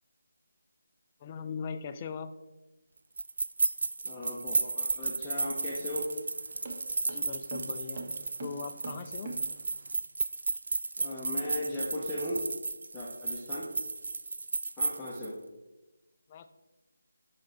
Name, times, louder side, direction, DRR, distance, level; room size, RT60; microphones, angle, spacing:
voice 1, 1.2-2.3 7.1-8.0 8.4-9.4 16.3-16.5, left 6 dB, 25° left, 9 dB, 0.3 m, -40 dB
sound 1, 3.2-15.3, right 3 dB, 65° right, 0.4 m, -33 dB
voice 2, 4.0-6.0 11.0-12.4 12.9-13.7 14.8-15.4, left 1 dB, 10° left, -9 dB, 0.8 m, -37 dB
sound 2, 5.3-9.9, right 2 dB, 35° right, 0.9 m, -44 dB
5.8 x 5.1 x 4.0 m, 1.1 s
figure-of-eight pair, 165°, 0 cm